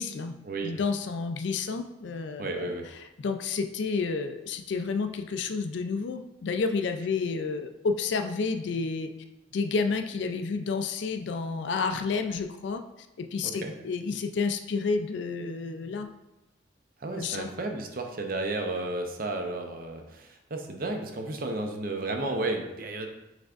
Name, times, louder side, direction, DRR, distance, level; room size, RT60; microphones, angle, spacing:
voice 1, 0.0-0.4 0.6-2.7 3.2-9.1 9.5-12.8 13.2-16.1 17.2-17.5, left 4 dB, 70° left, 7 dB, 0.4 m, -30 dB
voice 2, 2.4-2.9 13.4-13.7 17.0-23.1, right 2 dB, 45° right, 3 dB, 0.6 m, -33 dB
6.3 x 3.4 x 2.5 m, 0.97 s
head